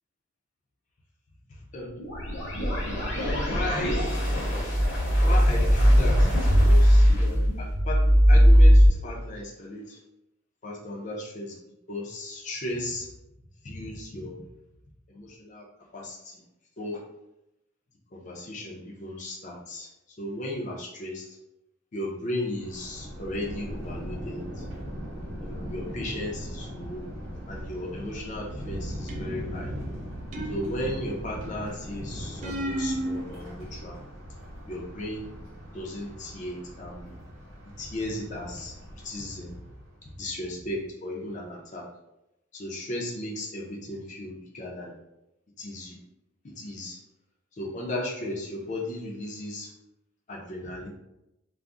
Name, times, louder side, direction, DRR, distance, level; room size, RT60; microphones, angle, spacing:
sound 1, 2.0-8.9, equal, 70° left, 0.9 m, -19 dB
voice 1, 3.1-4.1 5.2-10.0 10.6-11.6 11.9-13.1 13.6-14.4 15.1-15.7 15.9-16.4 16.8-17.0 18.1-19.9 20.2-21.3 21.9-24.7 25.4-27.0 27.5-29.7 30.5-34.0 34.7-35.3 35.7-37.1 37.8-38.7 39.0-39.5 40.0-41.9 42.5-44.9 45.6-46.0 46.4-47.0 47.5-49.7 50.3-50.9, left 1 dB, 40° left, -1 dB, 0.4 m, -35 dB
Thunder, 22.6-39.9, equal, 80° right, 0.7 m, -39 dB
sound 2, 29.1-29.6 30.3-31.2 32.4-33.2, right 1 dB, 40° right, 0.3 m, -32 dB
2.4 x 2.0 x 3.5 m, 0.90 s
head